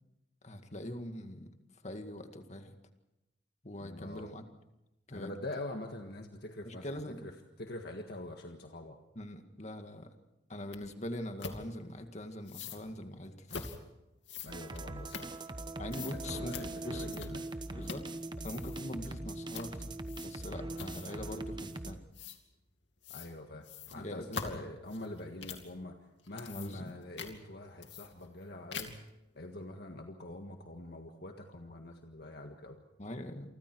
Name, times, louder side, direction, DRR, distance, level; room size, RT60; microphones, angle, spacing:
voice 1, 0.4-1.5 1.8-2.8 3.6-4.4 5.1-5.3 6.7-7.2 9.2-10.1 10.5-13.7 15.8-17.2 17.7-18.1 18.4-22.0 24.0-24.5 26.5-26.9 33.0-33.6, left 1 dB, 40° left, 6 dB, 2.0 m, -43 dB
voice 2, 3.8-4.4 5.1-9.0 14.4-15.3 15.9-17.4 23.1-26.0 26.3-29.0 29.3-32.8, left 1 dB, 60° left, 4 dB, 1.7 m, -45 dB
sound 1, 10.7-10.8 11.4-11.6 12.4-12.8 13.5-13.8 14.2-15.6 15.9-16.2 16.5-16.7 17.1-17.5 17.8-18.1 18.4-18.8 19.5-19.7 20.1-20.4 20.8-21.2 22.1-22.4 23.0-23.3 23.6-25.7 26.2-26.9 27.2-27.3 27.8-28.4 28.7-29.1, left 5 dB, 90° left, 2.6 m, -43 dB
sound 2, 14.5-21.9, right 2 dB, 25° right, 1.1 m, -41 dB
28.5 x 24.5 x 4.7 m, 0.94 s
head